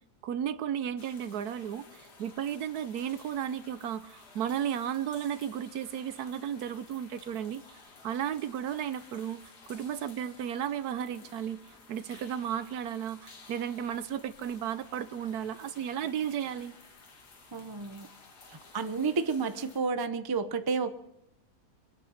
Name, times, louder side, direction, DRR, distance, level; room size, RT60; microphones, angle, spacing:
voice 1, 0.2-7.8 8.0-9.4 9.7-11.6 11.9-16.7, right 9 dB, 75° right, 1.2 m, -34 dB
sound 1, 1.0-19.8, left 4 dB, 80° left, 2.4 m, -54 dB
voice 2, 17.5-18.1 18.5-20.9, right 4 dB, 25° right, 0.5 m, -31 dB
23.5 x 9.2 x 5.7 m
omnidirectional pair, 1.7 m